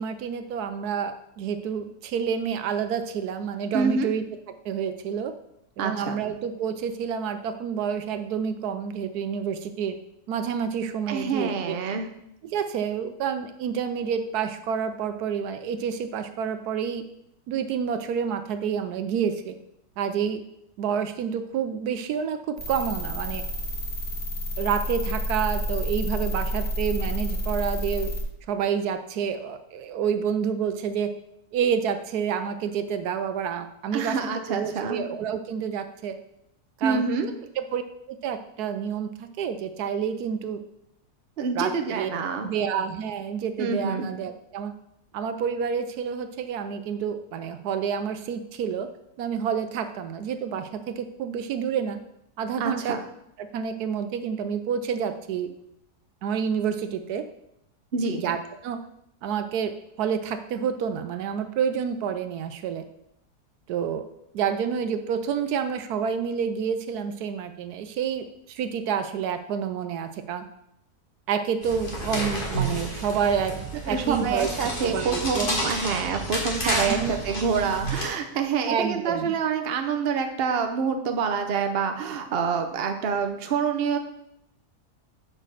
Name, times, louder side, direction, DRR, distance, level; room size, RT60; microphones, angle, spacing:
voice 1, 0.0-4.2 4.6-5.3 5.8-10.0 10.3-11.8 12.4-17.0 17.5-19.5 20.0-20.4 20.8-23.4 24.6-28.1 28.5-31.1 31.5-34.2 34.5-36.2 36.8-37.8 38.1-40.6 41.6-42.1 42.4-44.7 45.1-48.9 49.2-52.0 52.4-53.0 53.4-55.5 56.2-57.2 58.2-58.4 58.6-58.8 59.2-62.8 63.7-64.1 64.3-70.4 71.3-74.5 74.8-75.5 76.6-77.1 78.7-79.4, right 7 dB, 80° right, 9 dB, 1.1 m, -28 dB
voice 2, 3.7-4.1 5.8-6.2 11.1-12.1 33.9-35.0 36.8-37.3 41.4-42.5 43.6-44.1 52.6-53.0 57.9-58.2 73.9-84.0, right 5 dB, 45° right, 6 dB, 0.9 m, -27 dB
sound 1, 22.6-28.2, equal, 5° left, 2.1 m, -29 dB
sound 2, 71.6-78.0, right 1 dB, 35° left, 1.8 m, -30 dB
6.5 x 5.1 x 6.3 m, 0.78 s
omnidirectional pair, 1.7 m